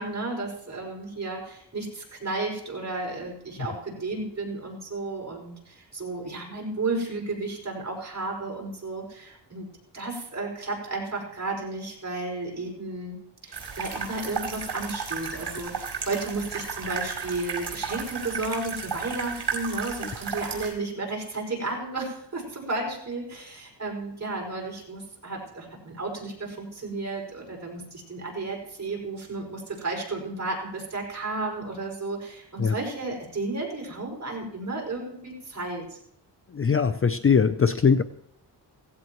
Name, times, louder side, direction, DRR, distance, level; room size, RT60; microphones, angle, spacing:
voice 1, 0.0-9.7 9.9-13.2 13.4-36.0, right 2 dB, 40° right, -1 dB, 5.6 m, -33 dB
sound 1, 13.5-20.7, right 5 dB, 70° right, 5.1 m, -34 dB
voice 2, 36.5-38.0, left 6 dB, 30° left, 11 dB, 0.5 m, -21 dB
17.0 x 16.0 x 3.1 m, 0.73 s
wide cardioid pair, 100°, 42 cm